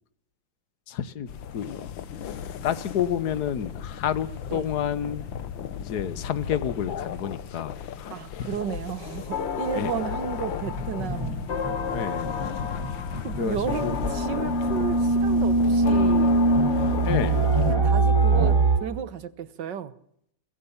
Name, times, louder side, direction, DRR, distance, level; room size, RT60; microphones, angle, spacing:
voice 1, 0.9-1.7 2.6-5.2 5.8-8.5 9.7-9.9 11.9-12.4 13.4-14.0 14.3-14.6 17.0-17.6, left 9 dB, 60° left, 1.7 m, -30 dB
sound 1, 1.3-17.8, left 8 dB, 85° left, 1.9 m, -36 dB
voice 2, 8.1-11.4 13.2-16.4 17.6-19.9, right 8 dB, 65° right, 1.8 m, -33 dB
sound 2, 9.3-18.0, left 6 dB, 40° left, 1.2 m, -34 dB
sound 3, 10.6-18.8, right 2 dB, 15° right, 3.9 m, -23 dB
22.5 x 16.5 x 7.2 m
omnidirectional pair, 2.1 m